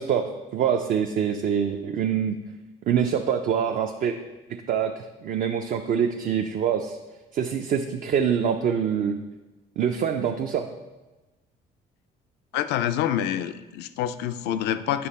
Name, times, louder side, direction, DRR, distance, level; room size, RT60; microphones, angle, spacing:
voice 1, 0.0-2.3 2.9-4.2 4.5-7.0 7.3-9.2 9.8-10.7, right 8 dB, 55° right, 4 dB, 0.5 m, -25 dB
voice 2, 12.5-15.1, left 11 dB, 85° left, 11 dB, 0.5 m, -27 dB
8.5 x 5.7 x 4.2 m, 1.1 s
cardioid pair, 110°, 17 cm